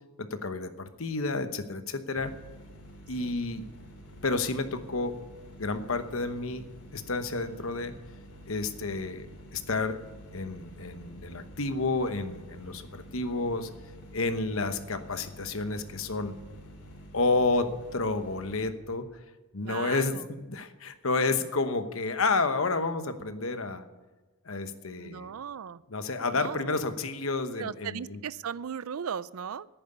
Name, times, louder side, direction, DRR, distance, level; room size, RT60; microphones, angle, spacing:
voice 1, 0.2-2.3 3.1-3.6 4.2-5.2 5.6-6.7 6.9-7.9 8.5-10.0 10.3-13.7 14.1-16.3 17.1-19.1 19.5-23.8 24.4-25.4 25.9-28.2, left 3 dB, 60° left, 9 dB, 1.1 m, -30 dB
sound 1, 2.2-18.7, equal, 90° left, 3.3 m, -49 dB
voice 2, 19.6-20.2 25.0-25.8 26.3-26.8 27.6-29.7, right 7 dB, 70° right, 19 dB, 0.4 m, -37 dB
10.5 x 9.3 x 9.7 m, 1.2 s
head